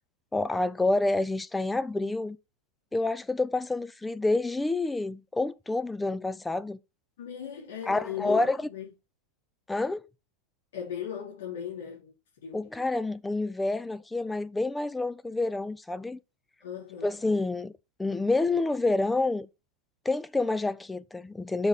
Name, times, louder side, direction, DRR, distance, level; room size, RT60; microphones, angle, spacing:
voice 1, 0.3-2.4 2.9-6.8 7.9-8.6 9.7-10.0 12.5-16.2 17.0-17.7 18.0-19.5 20.1-21.7, left 2 dB, 5° left, 0.4 m, -28 dB
voice 2, 7.2-8.9 10.7-12.7 16.6-17.1, left 8 dB, 85° left, 4.4 m, -38 dB
7.1 x 5.2 x 4.1 m
supercardioid pair, 160°, 0 cm